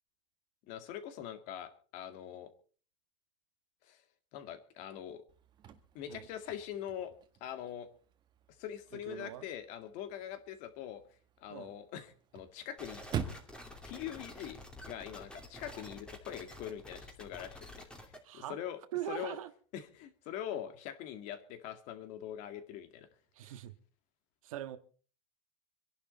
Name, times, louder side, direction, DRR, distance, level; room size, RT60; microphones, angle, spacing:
voice 1, 0.7-2.5 3.8-4.0 4.3-5.2 5.9-7.1 7.4-7.9 8.6-11.0 11.4-13.0 13.8-14.6 14.9-18.8 19.1-19.4 19.7-23.1, left 10 dB, 45° left, 2.1 m, -43 dB
Chirp tweet / Car / Slam, 5.3-15.3, right 8 dB, 25° right, 1.6 m, -47 dB
voice 2, 8.9-9.5 11.5-11.7 18.2-18.6 18.9-19.5 23.3-23.7 24.4-24.8, right 12 dB, 75° right, 1.5 m, -41 dB
sound 1, 12.8-18.2, left 1 dB, 5° left, 2.7 m, -49 dB
26.0 x 11.0 x 4.2 m
supercardioid pair, 145°, 17 cm